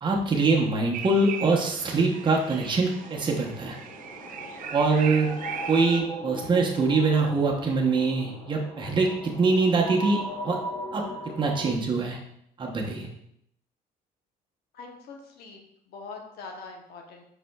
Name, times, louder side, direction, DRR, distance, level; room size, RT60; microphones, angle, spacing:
voice 1, 0.0-3.8 4.7-5.3 5.7-10.6 10.9-11.0 11.4-12.2 12.6-13.1, right 3 dB, 30° right, -1 dB, 0.8 m, -24 dB
sound 1, 0.9-6.0, right 7 dB, 55° right, 0.5 m, -38 dB
sound 2, 3.0-11.7, equal, 30° left, 0.8 m, -38 dB
voice 2, 14.7-17.2, left 4 dB, 70° left, 2 dB, 1.0 m, -43 dB
4.9 x 4.3 x 2.3 m, 0.74 s
cardioid pair, 110°, 17 cm